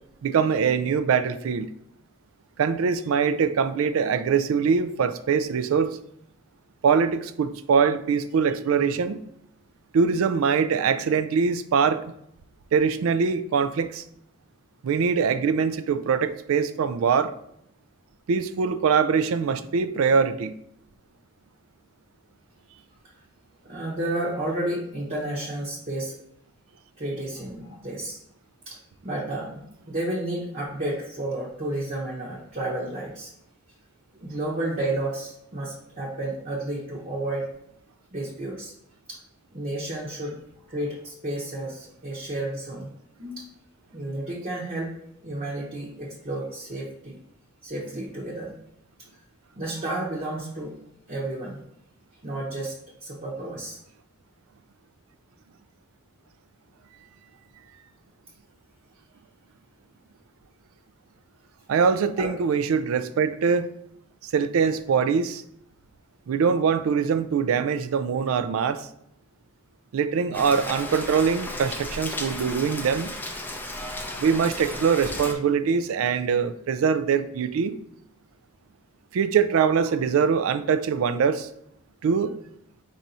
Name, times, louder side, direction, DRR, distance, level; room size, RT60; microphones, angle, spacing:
voice 1, 0.2-1.7 2.6-6.0 6.8-9.2 9.9-12.0 12.7-14.0 14.8-17.3 18.3-20.5 61.7-63.7 64.2-65.4 66.3-68.9 69.9-73.1 74.2-77.7 79.1-81.5 82.0-82.4, right 6 dB, 80° right, 0.3 m, -23 dB
voice 2, 23.6-26.2 27.0-28.2 28.7-28.8 29.0-29.6 29.9-33.3 34.2-37.5 38.1-38.7 39.1-39.2 39.5-40.4 40.7-42.9 43.2-43.5 43.9-44.9 45.2-47.2 47.6-48.5 49.6-50.7 51.1-51.6 52.2-52.7 53.0-53.8 62.2-62.3, right 1 dB, 40° right, 0.9 m, -31 dB
Rain, 70.3-75.3, left 1 dB, 10° left, 0.4 m, -34 dB
4.7 x 2.7 x 4.1 m
head